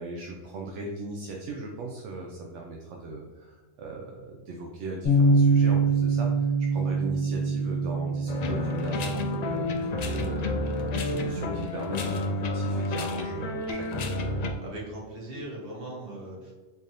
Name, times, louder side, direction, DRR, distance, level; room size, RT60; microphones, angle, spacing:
voice 1, 0.0-10.6 11.0-14.0, right 2 dB, 75° right, 0 dB, 0.9 m, -38 dB
Bass guitar, 5.0-11.3, right 3 dB, 50° left, 1.2 m, -25 dB
sound 1, 8.3-14.5, left 2 dB, 90° left, 0.3 m, -30 dB
voice 2, 14.6-16.5, right 1 dB, 50° right, -4 dB, 1.4 m, -39 dB
4.2 x 3.4 x 2.6 m, 1.3 s
omnidirectional pair, 1.3 m